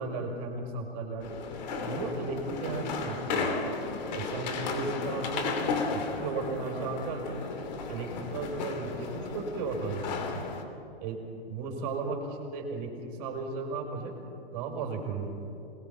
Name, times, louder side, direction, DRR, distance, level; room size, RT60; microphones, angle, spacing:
voice 1, 0.0-1.4 1.8-3.5 4.1-5.6 5.9-7.4 7.9-10.4 11.0-14.1 14.5-15.4, right 3 dB, 35° right, 1 dB, 5.2 m, -35 dB
sound 1, 1.2-10.6, left 4 dB, 45° left, 2.8 m, -34 dB
27.0 x 21.0 x 5.8 m, 2.8 s
figure-of-eight pair, 120°, 30 cm